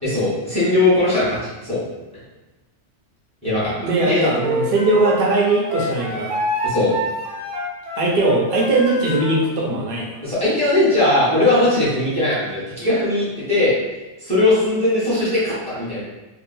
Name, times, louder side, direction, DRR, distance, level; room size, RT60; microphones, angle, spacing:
voice 1, 0.0-1.8 3.4-3.7 4.0-4.3 6.6-6.9 10.2-13.7 14.2-16.0, left 2 dB, 5° left, -11 dB, 1.3 m, -19 dB
voice 2, 3.8-6.3 7.9-10.1, right 2 dB, 55° right, -2 dB, 0.8 m, -19 dB
Wind instrument woodwind instrument, 4.4-9.5, right 1 dB, 85° right, 1.1 m, -26 dB
2.9 x 2.5 x 2.6 m, 1.1 s
omnidirectional pair, 1.3 m